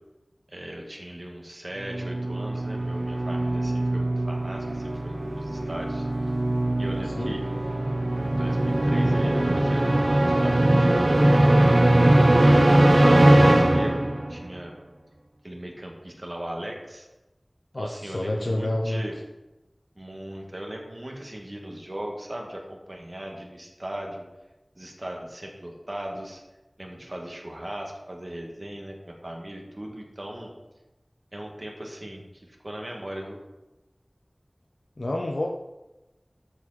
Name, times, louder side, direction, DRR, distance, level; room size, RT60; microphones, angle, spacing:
voice 1, 0.5-6.1 6.8-7.4 8.2-14.0 14.3-14.7 15.4-17.1 17.8-19.1 19.9-24.2 24.7-26.4 26.8-30.5 31.3-33.4, right 1 dB, 50° right, 0 dB, 1.7 m, -38 dB
sound 1, 1.8-14.4, right 1 dB, 70° right, 0.7 m, -21 dB
voice 2, 7.0-7.3 17.7-19.0 35.0-35.5, left 1 dB, 90° left, 0 dB, 0.6 m, -28 dB
12.5 x 4.9 x 4.1 m, 1.0 s
wide cardioid pair, 40°, 0 cm